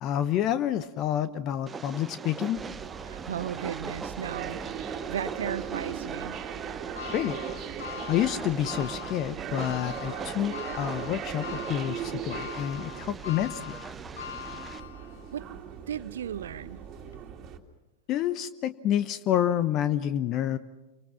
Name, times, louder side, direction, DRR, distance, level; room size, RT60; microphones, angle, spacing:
voice 1, 0.0-2.6 7.1-7.4 8.1-13.8 18.1-20.6, left 11 dB, 35° left, 14 dB, 0.9 m, -28 dB
Train, 1.7-14.8, right 5 dB, 15° right, 1.0 m, -41 dB
sound 1, 2.6-17.6, right 8 dB, 30° right, 2.6 m, -39 dB
voice 2, 3.0-6.4 14.4-14.6 15.3-15.5 15.9-16.8, right 9 dB, 65° right, 15 dB, 1.0 m, -36 dB
sound 2, 7.0-15.3 15.8-15.9 17.1-17.2, left 9 dB, 65° left, 0.7 m, -41 dB
29.0 x 25.0 x 6.1 m, 1.1 s
figure-of-eight pair, 90°, 0 cm